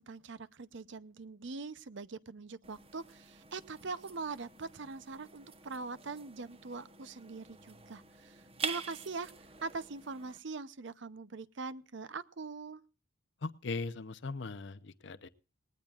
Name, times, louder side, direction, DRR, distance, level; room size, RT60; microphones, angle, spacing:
voice 1, 0.0-9.3 9.6-12.8, right 4 dB, 60° right, 15 dB, 0.7 m, -42 dB
sound 1, 2.6-10.4, right 5 dB, 30° right, 1.0 m, -46 dB
voice 2, 13.4-15.3, left 3 dB, 60° left, 13 dB, 0.6 m, -39 dB
19.0 x 19.0 x 2.4 m, 0.35 s
head